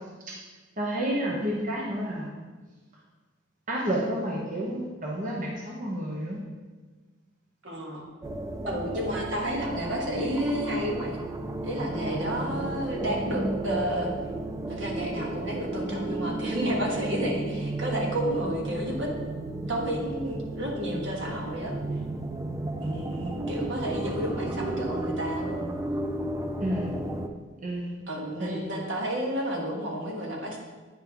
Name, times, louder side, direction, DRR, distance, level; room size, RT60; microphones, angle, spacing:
voice 1, 0.8-2.3 3.7-6.4 12.0-12.1 26.6-27.0 27.6-28.0 28.4-28.7, right 1 dB, 45° right, -3 dB, 0.9 m, -30 dB
voice 2, 7.6-8.0 8.6-11.2 11.6-14.1 14.7-19.1 19.7-21.7 22.8-25.7 28.1-30.6, equal, 75° right, -1 dB, 1.5 m, -31 dB
sound 1, 8.2-27.3, right 2 dB, 15° right, 0.4 m, -33 dB
9.0 x 5.4 x 3.5 m, 1.3 s
head